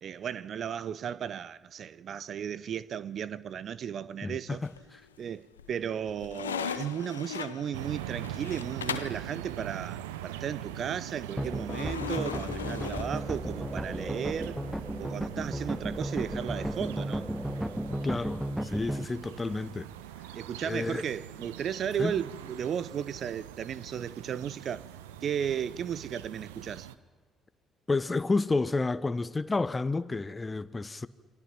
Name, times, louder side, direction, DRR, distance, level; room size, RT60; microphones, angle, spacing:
voice 1, 0.0-4.6 5.2-14.6 15.0-17.3 20.3-24.9 25.2-26.9, right 8 dB, 50° right, 0.7 m, -35 dB
voice 2, 4.2-4.7 17.9-19.9 20.6-21.0 22.0-22.1 27.9-31.1, left 3 dB, 25° left, 1.1 m, -30 dB
sound 1, 4.6-5.2 5.6-9.2 11.7-13.7, left 8 dB, 85° left, 0.7 m, -38 dB
sound 2, 7.7-27.0, right 12 dB, 75° right, 0.9 m, -43 dB
sound 3, 11.4-19.0, right 1 dB, 5° right, 0.7 m, -34 dB
28.5 x 25.5 x 5.9 m
figure-of-eight pair, 50°, 0 cm